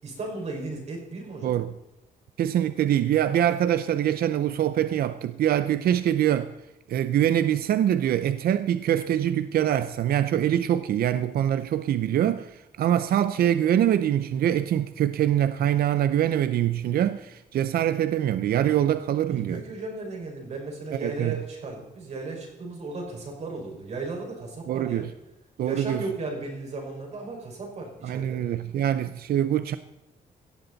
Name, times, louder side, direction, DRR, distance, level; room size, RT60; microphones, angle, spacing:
voice 1, 0.0-1.6 18.7-18.8 19.3-25.1 25.7-28.5, right 3 dB, 45° right, 5.3 m, -35 dB
voice 2, 1.4-1.7 2.4-6.5 6.9-19.6 21.0-21.4 24.7-25.1 25.6-26.0 28.0-29.8, right 11 dB, 80° right, 0.6 m, -24 dB
17.0 x 13.5 x 4.1 m
wide cardioid pair, 165°, 15 cm